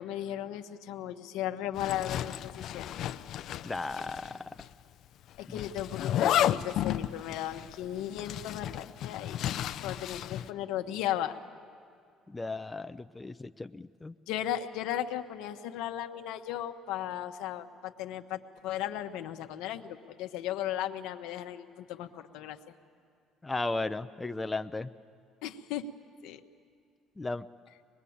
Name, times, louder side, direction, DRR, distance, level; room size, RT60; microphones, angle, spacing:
voice 1, 0.0-3.0 5.4-9.4 9.8-11.4 14.3-22.6 25.4-25.9 26.2-26.4, left 11 dB, 80° left, 6 dB, 1.0 m, -36 dB
Zipper (clothing), 1.8-4.3 4.6-4.7 5.6-10.5, left 11 dB, 65° left, 0.5 m, -32 dB
voice 2, 3.6-4.5 5.5-5.6 12.3-14.1 23.4-24.9 27.2-27.5, left 3 dB, 15° left, 10 dB, 0.5 m, -35 dB
23.5 x 21.0 x 8.6 m, 2.3 s
supercardioid pair, 85°, 0 cm